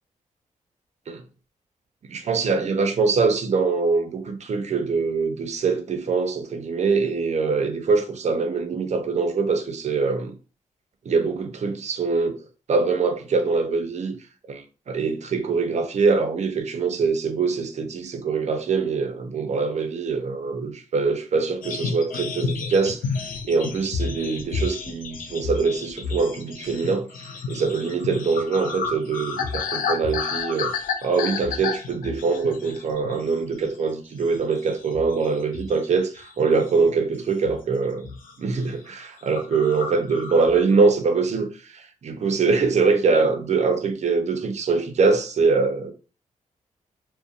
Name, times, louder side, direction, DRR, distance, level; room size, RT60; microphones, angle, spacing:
voice 1, 2.1-10.3 11.1-12.4 12.7-14.1 14.5-23.0 23.5-27.1 27.5-30.7 31.0-38.1 38.4-45.9, right 4 dB, 55° right, 0.5 m, -23 dB
sound 1, 21.6-33.3 33.6-33.9 34.3-35.9 36.2-36.9 37.4-37.7 37.9-38.3 38.6-38.7 39.0-39.1 39.3-40.7, left 5 dB, 80° left, 0.4 m, -31 dB
2.6 x 2.1 x 2.4 m
cardioid pair, 90°, 14 cm